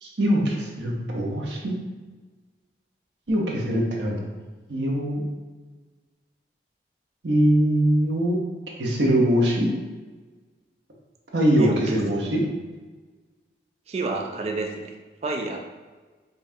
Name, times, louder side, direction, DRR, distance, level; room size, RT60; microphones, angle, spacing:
voice 1, 0.0-1.8 3.3-4.3 4.7-5.2 7.2-8.4 8.8-9.7 11.3-12.4, equal, 80° right, -2 dB, 0.8 m, -22 dB
voice 2, 11.6-12.0 13.9-14.9 15.2-15.6, right 3 dB, 35° right, 2 dB, 0.3 m, -29 dB
5.3 x 2.3 x 2.7 m, 1.3 s
head